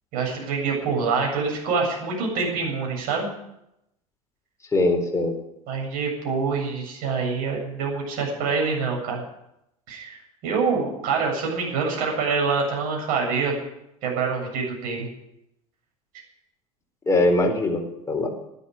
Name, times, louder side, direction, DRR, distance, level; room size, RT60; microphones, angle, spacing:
voice 1, 0.1-3.3 5.7-9.2 9.9-13.5 14.0-15.1, right 5 dB, 50° right, 0 dB, 7.6 m, -26 dB
voice 2, 4.7-5.4 17.1-18.3, left 2 dB, 15° left, 2 dB, 4.2 m, -21 dB
12.0 x 11.5 x 9.5 m, 0.84 s
figure-of-eight pair, 75°, 18 cm